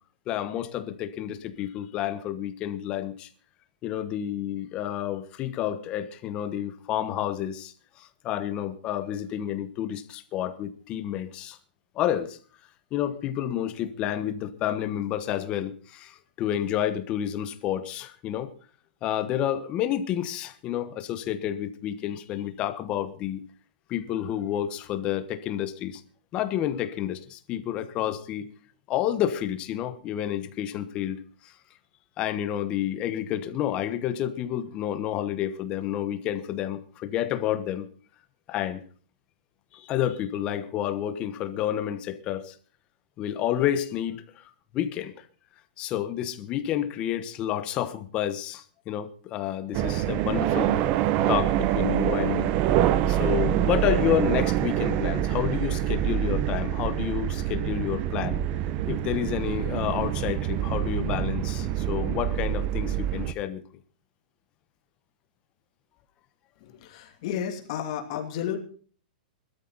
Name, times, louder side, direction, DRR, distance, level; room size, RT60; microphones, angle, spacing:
voice 1, 0.3-3.3 3.8-11.6 11.9-12.4 12.9-18.5 19.0-23.4 23.9-26.0 26.3-28.5 28.9-31.5 32.2-37.9 38.5-38.8 39.7-42.6 43.2-44.4 44.7-45.3 45.8-50.8 51.3-52.8 53.1-58.4 58.8-63.6, left 11 dB, 20° left, 1.2 m, -30 dB
sound 1, 49.7-63.3, right 12 dB, 25° right, 0.7 m, -26 dB
voice 2, 66.6-68.6, left 9 dB, 35° left, 2.8 m, -32 dB
20.5 x 13.0 x 4.1 m
supercardioid pair, 175°, 5 cm